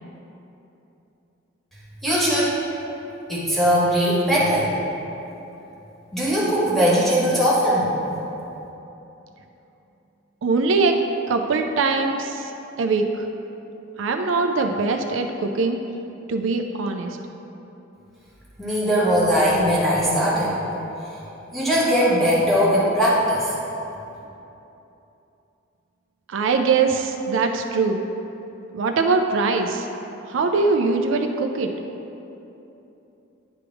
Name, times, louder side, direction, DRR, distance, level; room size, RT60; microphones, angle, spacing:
voice 1, 2.0-2.5 3.3-4.7 6.1-7.9 18.6-20.5 21.5-23.5, equal, ahead, -8 dB, 1.5 m, -20 dB
voice 2, 10.4-11.0 11.3-12.5 12.8-13.3 14.0-15.8 16.3-17.2 26.3-28.0 28.7-29.9 30.3-31.7, right 4 dB, 70° right, 4 dB, 0.4 m, -22 dB
10.0 x 3.5 x 4.7 m, 3.0 s
head